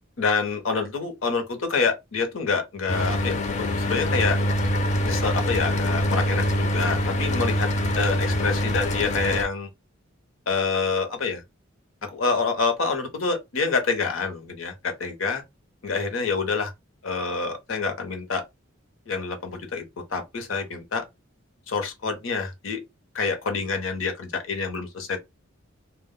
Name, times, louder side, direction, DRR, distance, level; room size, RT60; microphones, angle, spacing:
voice 1, 0.2-4.4 5.0-7.7 7.9-9.7 10.5-11.4 12.0-15.4 15.8-16.7 17.0-18.4 19.1-21.0 21.7-22.8 23.1-25.2, left 4 dB, 80° left, 0.8 m, -27 dB
Mechanical fan, 2.9-9.5, equal, 35° left, 0.4 m, -24 dB
2.1 x 2.1 x 3.6 m
head